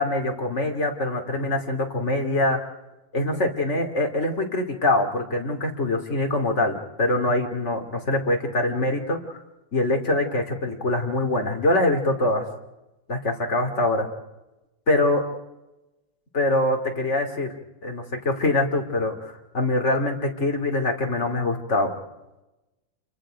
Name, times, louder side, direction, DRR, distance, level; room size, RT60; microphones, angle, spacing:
voice 1, 0.0-2.6 3.1-9.4 9.7-12.4 13.1-14.1 14.9-15.2 16.3-17.5 17.8-21.9, left 2 dB, 40° left, 3 dB, 3.0 m, -24 dB
28.0 x 24.0 x 5.1 m, 1.0 s
omnidirectional pair, 2.0 m